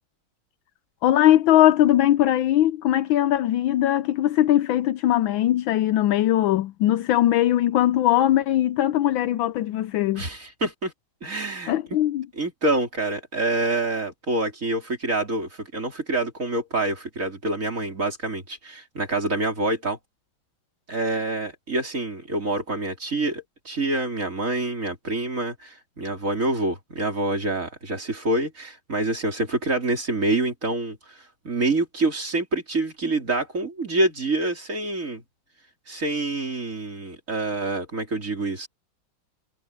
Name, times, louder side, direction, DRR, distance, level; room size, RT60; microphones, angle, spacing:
voice 1, 1.0-10.2 11.7-12.3, left 13 dB, 75° left, 1.3 m, -20 dB
voice 2, 10.1-10.9 11.2-11.7 12.4-20.0 20.9-35.2 35.9-38.7, right 2 dB, 35° right, 4.1 m, -26 dB
omnidirectional pair, 2.3 m